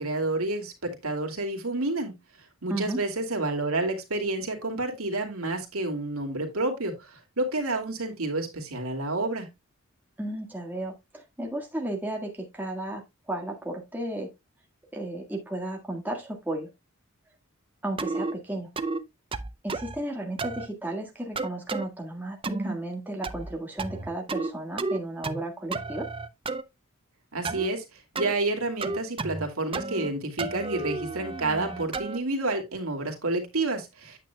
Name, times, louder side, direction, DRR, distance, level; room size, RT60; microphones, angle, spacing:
voice 1, 0.0-2.1 2.6-9.5 27.3-27.8 28.2-34.2, right 2 dB, 75° right, 2.4 m, -29 dB
voice 2, 2.7-3.0 10.2-14.3 14.9-16.7 17.8-18.7 19.6-26.1, right 1 dB, 10° right, 1.7 m, -34 dB
sound 1, 18.0-18.3 18.8-19.0 19.3-20.0 20.4-20.7 21.4-21.9 22.4-22.8 23.2-23.5 23.8-24.5 24.8-25.4 25.7-26.6 27.4-27.7 28.1-28.3 28.8-29.5 29.7-30.1 30.4-32.2, right 3 dB, 25° right, 0.6 m, -32 dB
9.1 x 8.4 x 2.2 m
head